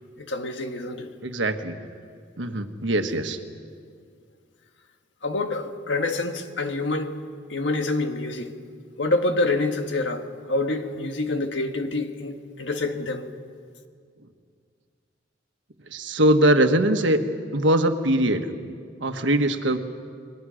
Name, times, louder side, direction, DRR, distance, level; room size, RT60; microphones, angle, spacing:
voice 1, 0.2-1.1 5.2-7.2 7.5-8.5 9.0-13.3, left 2 dB, 70° left, 1.7 m, -27 dB
voice 2, 1.2-1.8 2.4-3.4 15.9-17.2 17.5-18.5 19.0-19.8, right 1 dB, 75° right, 1.4 m, -21 dB
29.0 x 21.0 x 6.4 m
head